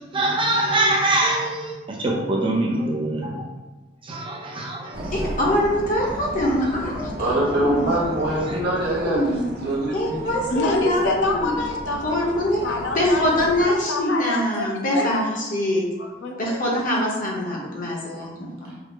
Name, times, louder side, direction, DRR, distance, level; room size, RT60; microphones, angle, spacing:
voice 1, 0.1-3.5 4.0-5.3 8.4-8.6, right 1 dB, 30° right, 0 dB, 0.6 m, -24 dB
sound 1, 4.9-13.6, right 1 dB, 75° right, 0.8 m, -35 dB
voice 2, 5.1-7.8 8.7-9.4 9.9-11.5 12.0-12.6 12.9-15.9 16.4-18.7, left 1 dB, 50° left, -3 dB, 1.0 m, -24 dB
voice 3, 7.2-10.2 18.7-18.8, right 1 dB, 60° right, -5 dB, 1.2 m, -24 dB
voice 4, 10.5-12.0 12.6-13.3 13.7-15.1 16.0-16.7, left 3 dB, 85° left, 1 dB, 0.6 m, -27 dB
4.9 x 2.0 x 3.3 m, 1.2 s
head